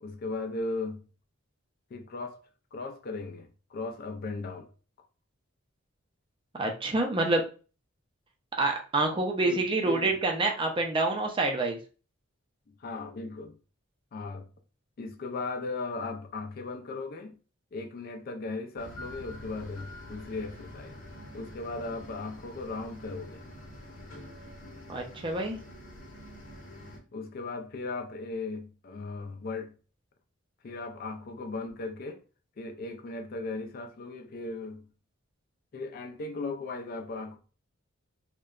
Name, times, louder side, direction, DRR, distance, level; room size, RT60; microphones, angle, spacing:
voice 1, 0.0-1.1 1.9-2.4 2.7-4.7 9.4-10.2 12.7-13.6 14.1-14.5 15.0-17.4 17.7-21.0 21.3-23.4 27.1-29.8 30.6-32.2 32.6-34.9 35.7-37.4, left 3 dB, 45° left, 0.4 m, -37 dB
voice 2, 6.6-7.4 8.6-11.8 24.9-25.6, right 2 dB, 25° right, 0.4 m, -27 dB
sound 1, 18.8-27.0, left 1 dB, 65° left, 0.9 m, -46 dB
2.7 x 2.1 x 2.3 m
head